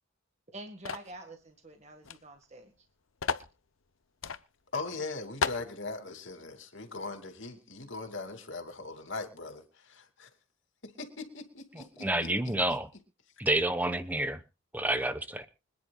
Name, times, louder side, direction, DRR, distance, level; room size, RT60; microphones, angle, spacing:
voice 1, 0.5-2.7, right 2 dB, 35° right, 4 dB, 1.8 m, -47 dB
sound 1, 0.9-1.2 2.1-2.2 2.4-2.5 3.2-3.5 4.2-4.4 4.9-5.0 5.4-5.7, left 5 dB, 85° left, 0.8 m, -32 dB
voice 2, 4.7-10.3 10.8-12.5, left 3 dB, 70° left, 6 dB, 2.9 m, -40 dB
voice 3, 12.0-12.9 13.4-14.4 14.7-15.5, right 1 dB, 10° right, 11 dB, 1.2 m, -29 dB
25.0 x 10.5 x 2.4 m, 0.30 s
head